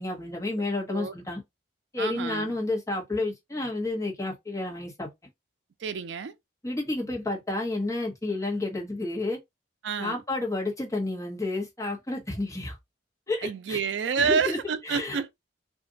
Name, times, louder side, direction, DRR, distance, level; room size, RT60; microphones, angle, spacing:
voice 1, 0.0-1.4 1.9-5.1 6.6-9.4 10.0-12.8 13.3-13.8 14.2-14.6 14.8-15.2, left 2 dB, 15° left, 1.1 m, -30 dB
voice 2, 2.0-2.5 5.8-6.3 9.8-10.2 13.4-15.3, right 6 dB, 75° right, 0.4 m, -28 dB
2.5 x 2.2 x 3.8 m
head